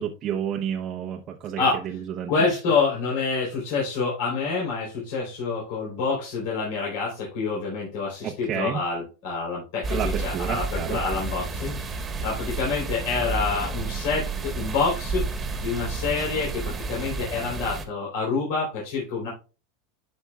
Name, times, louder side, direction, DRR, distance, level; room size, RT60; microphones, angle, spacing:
voice 1, 0.0-2.3 8.2-8.8 9.9-11.0, right 9 dB, 35° right, 1 dB, 0.8 m, -30 dB
voice 2, 2.3-19.3, left 4 dB, 65° left, -4 dB, 3.8 m, -27 dB
sound 1, 9.8-17.9, right 3 dB, 15° right, 1.4 m, -31 dB
12.0 x 5.3 x 2.4 m, 0.33 s
supercardioid pair, 140°, 0 cm